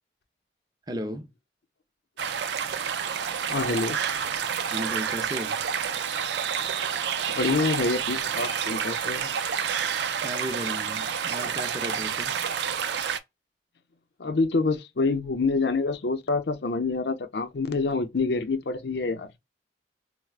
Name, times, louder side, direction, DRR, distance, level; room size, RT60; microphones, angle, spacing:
voice 1, 0.9-1.3 4.7-5.6 10.2-12.4, equal, 20° right, 0.7 m, -35 dB
sound 1, 2.2-13.2, right 7 dB, 80° right, 0.4 m, -29 dB
voice 2, 3.5-4.0 7.3-9.3 14.2-19.3, left 3 dB, 70° left, 0.6 m, -26 dB
4.5 x 2.1 x 2.3 m
head